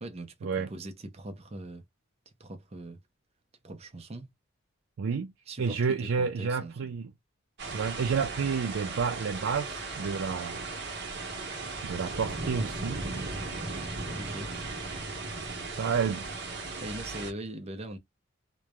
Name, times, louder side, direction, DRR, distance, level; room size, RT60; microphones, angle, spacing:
voice 1, 0.0-1.8 2.4-3.0 3.6-4.3 5.5-5.8 6.2-6.9 14.2-14.5 16.8-18.0, right 1 dB, 30° right, 0.6 m, -41 dB
voice 2, 5.0-5.3 5.6-7.1 7.7-10.7 11.8-13.3 15.7-16.3, right 6 dB, 75° right, 0.4 m, -30 dB
sound 1, 7.6-17.3, right 3 dB, 60° right, 1.1 m, -37 dB
3.1 x 2.1 x 2.3 m
head